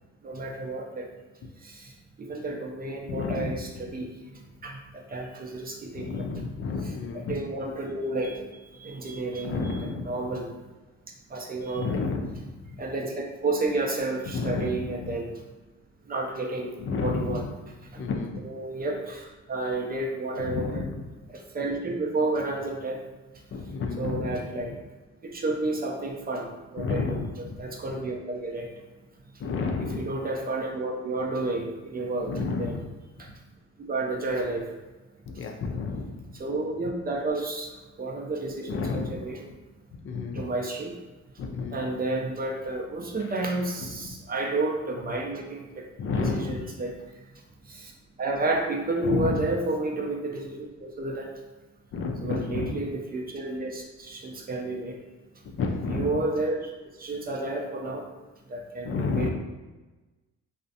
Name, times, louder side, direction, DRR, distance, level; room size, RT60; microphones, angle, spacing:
voice 1, 0.2-1.1 1.6-1.9 2.2-4.1 4.6-6.3 6.8-8.5 8.8-10.5 11.3-11.9 12.8-15.3 16.1-16.7 17.0-17.4 17.9-18.0 18.4-20.8 21.3-23.0 24.0-24.7 25.2-28.7 29.8-32.8 33.2-33.3 33.8-34.6 36.4-37.7 38.0-39.4 40.3-40.9 41.7-45.9 46.2-47.0 47.7-47.9 48.2-51.3 52.2-55.0 55.9-56.7 57.0-58.0 58.5-59.3, right 2 dB, 30° right, 1 dB, 0.5 m, -31 dB
voice 2, 3.1-3.6 6.0-7.4 9.4-10.1 11.8-12.5 14.3-15.2 16.8-17.5 18.0-18.4 20.4-21.1 23.5-24.4 26.8-27.5 29.4-30.0 32.3-32.9 35.3-36.3 38.7-39.2 40.0-40.4 41.4-41.8 44.0-44.1 46.0-46.7 49.0-49.5 51.9-52.8 55.5-56.2 58.8-59.3, left 4 dB, 45° left, 3 dB, 0.4 m, -30 dB
2.4 x 2.1 x 2.6 m, 1.2 s
supercardioid pair, 70°, 30 cm